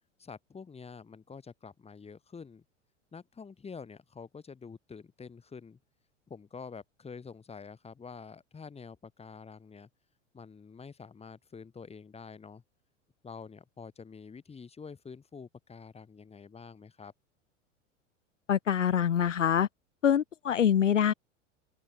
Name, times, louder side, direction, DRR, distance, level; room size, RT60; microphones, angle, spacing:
voice 1, 0.2-2.6 3.1-5.8 6.3-9.9 10.3-12.6 13.2-17.1, left 5 dB, 15° left, 6.7 m, -47 dB
voice 2, 18.5-19.7 20.0-21.1, left 9 dB, 80° left, 0.6 m, -25 dB
figure-of-eight pair, 85°, 37 cm